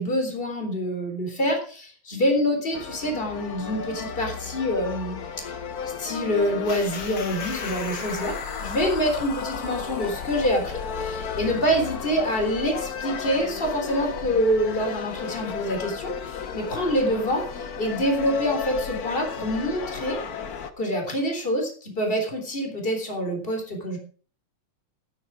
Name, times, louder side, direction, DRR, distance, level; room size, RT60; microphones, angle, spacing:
voice 1, 0.0-5.5 6.0-8.3 8.6-20.2 20.8-24.0, equal, 15° left, 3 dB, 3.7 m, -26 dB
sound 1, 2.7-20.7, left 6 dB, 75° left, 0.8 m, -34 dB
sound 2, 6.6-14.1, left 5 dB, 45° left, 2.2 m, -38 dB
13.5 x 11.0 x 4.8 m, 0.41 s
omnidirectional pair, 3.4 m